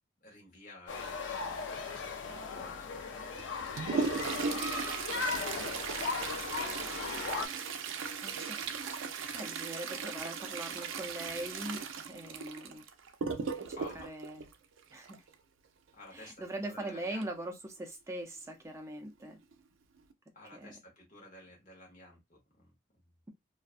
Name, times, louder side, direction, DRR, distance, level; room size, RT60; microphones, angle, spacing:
voice 1, 0.2-4.1 4.8-7.4 13.7-14.3 15.9-17.3 20.3-23.2, left 2 dB, 40° left, 1.0 m, -54 dB
sound 1, 0.9-7.5, left 4 dB, 75° left, 0.4 m, -37 dB
Toilet flush, 3.4-15.3 17.2-17.3 17.6-17.7 18.5-18.6 19.3-19.5 20.0-20.1, right 5 dB, 90° right, 0.4 m, -37 dB
voice 2, 8.2-8.7 9.3-12.8 13.5-14.5 14.9-15.2 16.1-19.4 20.5-20.7, right 1 dB, 15° right, 0.4 m, -41 dB
2.5 x 2.1 x 2.4 m
head